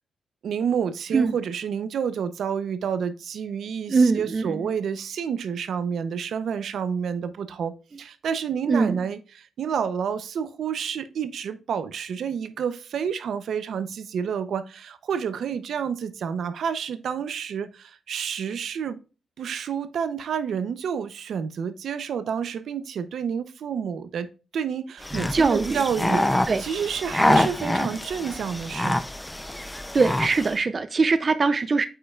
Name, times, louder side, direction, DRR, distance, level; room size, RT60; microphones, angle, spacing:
voice 1, 0.4-19.0 19.4-24.3 24.5-29.0, right 7 dB, 75° right, 0.7 m, -29 dB
voice 2, 3.9-4.7 8.7-9.0 25.3-25.8 26.5-26.6 29.9-31.9, right 4 dB, 40° right, 0.5 m, -22 dB
sound 1, 25.0-30.6, left 1 dB, 10° left, 0.5 m, -26 dB
8.5 x 5.4 x 2.4 m
cardioid pair, 95°, 0 cm